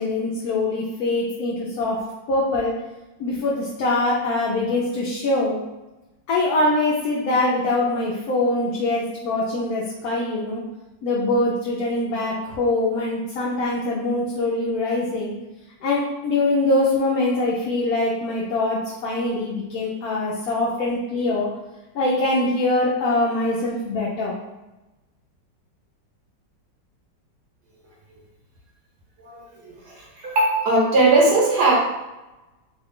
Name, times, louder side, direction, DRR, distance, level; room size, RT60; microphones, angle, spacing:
voice 1, 0.0-2.0 2.3-2.7 3.2-5.6 6.3-10.6 11.0-15.3 15.8-21.5 21.9-24.3, left 2 dB, 65° left, -5 dB, 1.0 m, -23 dB
voice 2, 30.2-31.7, right 2 dB, 65° right, -4 dB, 1.5 m, -18 dB
3.9 x 2.3 x 3.6 m, 1.0 s
omnidirectional pair, 2.0 m